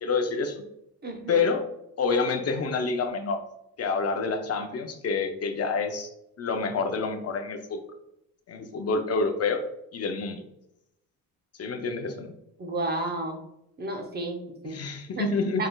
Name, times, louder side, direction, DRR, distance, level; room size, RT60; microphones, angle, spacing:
voice 1, 0.0-0.6 1.3-1.6 2.0-3.4 3.8-6.1 6.4-7.8 8.5-9.6 9.9-10.4 11.6-12.3 14.6-15.7, left 4 dB, 40° left, 6 dB, 0.6 m, -28 dB
voice 2, 1.0-1.4 12.6-13.4 13.8-14.8 15.2-15.3 15.6-15.7, right 2 dB, 25° right, 3 dB, 0.7 m, -32 dB
5.1 x 4.1 x 2.3 m, 0.82 s
cardioid pair, 145°, 37 cm